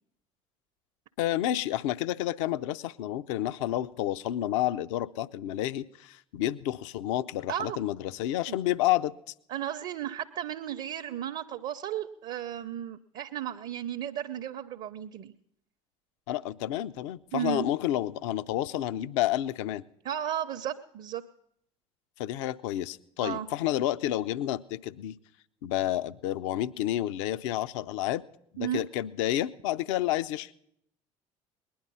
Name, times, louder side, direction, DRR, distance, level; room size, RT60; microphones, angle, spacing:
voice 1, 1.2-9.1 16.3-19.8 22.2-25.1 25.6-28.2 28.5-30.5, left 13 dB, 65° left, 15 dB, 0.5 m, -30 dB
voice 2, 7.5-7.8 9.5-15.3 17.3-17.7 20.0-21.2 23.2-23.5 28.6-28.8, right 11 dB, 50° right, 8 dB, 0.6 m, -34 dB
19.5 x 10.5 x 5.4 m, 0.72 s
figure-of-eight pair, 60°, 17 cm